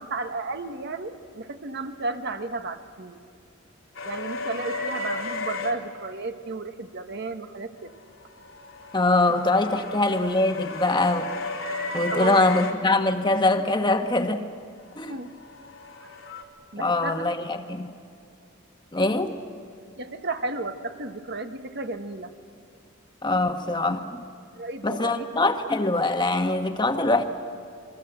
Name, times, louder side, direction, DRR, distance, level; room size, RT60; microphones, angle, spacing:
voice 1, 0.0-3.2 4.0-7.9 12.1-12.4 15.0-15.3 16.7-17.2 20.0-22.3 24.5-25.3, right 3 dB, 55° right, 1.3 m, -33 dB
sound 1, 3.9-5.7 8.1-12.7 15.1-16.4, left 3 dB, 90° left, 3.0 m, -34 dB
voice 2, 8.9-11.3 11.9-14.5 15.0-15.1 16.8-17.9 18.9-19.4 23.2-24.2 24.8-27.2, left 2 dB, 20° left, 1.3 m, -23 dB
28.5 x 22.0 x 8.0 m
head